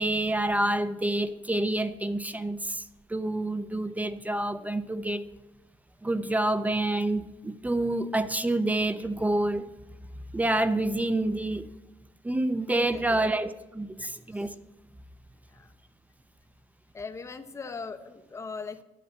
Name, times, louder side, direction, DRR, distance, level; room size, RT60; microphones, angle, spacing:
voice 1, 0.0-5.3 6.0-9.6 10.3-11.6 12.2-13.5 13.7-14.5, right 1 dB, 10° right, 13 dB, 0.4 m, -28 dB
voice 2, 12.8-13.3 14.0-14.5 15.5-15.7 16.9-18.8, left 4 dB, 20° left, 8 dB, 0.7 m, -40 dB
9.4 x 6.8 x 7.7 m, 1.1 s
cardioid pair, 145°, 14 cm